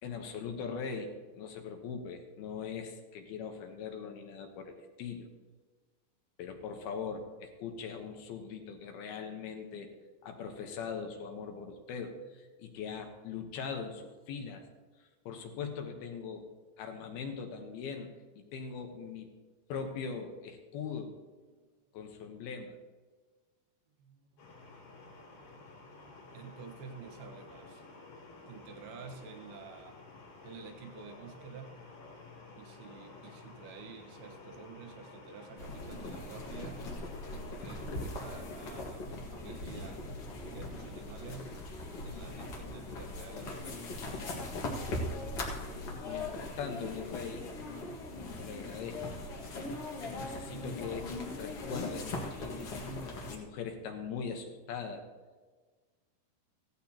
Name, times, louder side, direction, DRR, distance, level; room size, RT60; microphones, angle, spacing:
voice 1, 0.0-5.3 6.4-9.9 10.2-14.7 15.3-16.5 16.8-19.3 19.7-21.2 21.9-22.8 46.0-47.5 48.4-49.0 50.0-52.7 53.3-55.0, left 6 dB, 70° left, 4 dB, 2.8 m, -41 dB
voice 2, 24.0-27.8 28.5-30.1 30.4-31.8 32.6-36.9 37.3-40.0 40.5-41.6 42.0-44.5, right 5 dB, 70° right, 3 dB, 3.0 m, -50 dB
sound 1, 24.4-38.9, left 3 dB, 85° left, 6.3 m, -52 dB
sound 2, 35.6-53.4, left 2 dB, 55° left, 1.8 m, -40 dB
15.5 x 15.5 x 2.9 m, 1.4 s
omnidirectional pair, 5.0 m